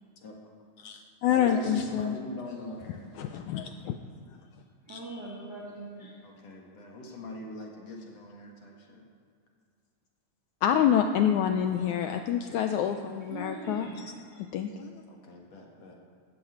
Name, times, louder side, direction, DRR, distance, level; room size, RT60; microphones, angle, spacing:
voice 1, 0.8-2.2 3.2-4.0 4.9-5.0 10.6-14.1 14.5-14.9, left 9 dB, 80° left, 6 dB, 1.8 m, -27 dB
voice 2, 1.3-3.1 6.2-9.0 15.1-16.0, left 2 dB, 55° left, 0 dB, 2.5 m, -42 dB
voice 3, 4.9-6.2 12.5-14.4, right 1 dB, 35° right, -4 dB, 2.0 m, -42 dB
13.0 x 9.3 x 8.5 m, 2.2 s
omnidirectional pair, 4.0 m